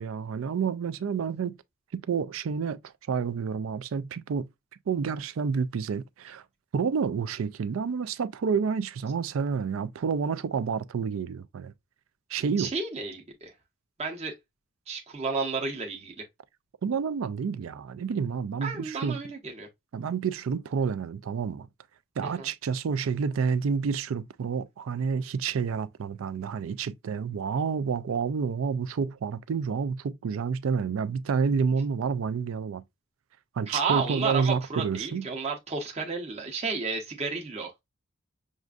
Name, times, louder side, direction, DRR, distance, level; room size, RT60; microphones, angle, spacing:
voice 1, 0.0-1.5 1.9-2.8 3.1-4.5 4.9-6.4 6.7-11.7 12.3-12.7 16.8-19.2 19.9-21.7 22.2-32.8 33.5-35.2, right 6 dB, 85° right, 0.4 m, -29 dB
voice 2, 12.6-13.5 14.0-14.3 14.9-16.3 18.6-19.7 22.2-22.5 33.7-37.8, right 4 dB, 30° right, 0.8 m, -32 dB
6.2 x 2.5 x 2.4 m
head